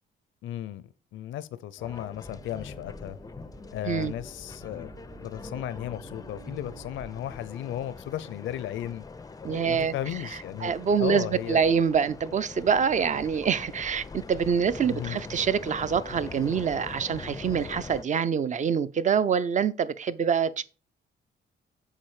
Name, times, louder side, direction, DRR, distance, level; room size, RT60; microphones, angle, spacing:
voice 1, 0.4-3.2 3.7-4.9 5.2-9.0 9.5-10.7 11.0-11.6 14.9-15.2, left 11 dB, 75° left, 0.5 m, -35 dB
sound 1, 1.8-18.0, left 4 dB, 20° left, 0.4 m, -43 dB
sound 2, 2.2-7.3, right 3 dB, 60° right, 4.1 m, -49 dB
voice 2, 9.4-9.9 10.6-20.6, right 7 dB, 40° right, 0.6 m, -25 dB
7.5 x 4.7 x 4.9 m
cardioid pair, 90°, 20 cm